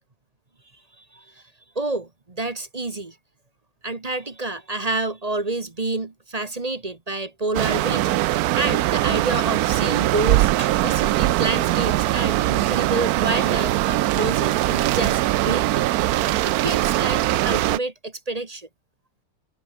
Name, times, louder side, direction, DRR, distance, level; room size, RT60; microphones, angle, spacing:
voice 1, 1.0-1.4 1.7-3.2 3.8-18.7, right 2 dB, 25° right, 1.2 m, -29 dB
sound 1, 7.5-17.8, right 16 dB, 75° right, 0.8 m, -21 dB
omnidirectional pair, 2.0 m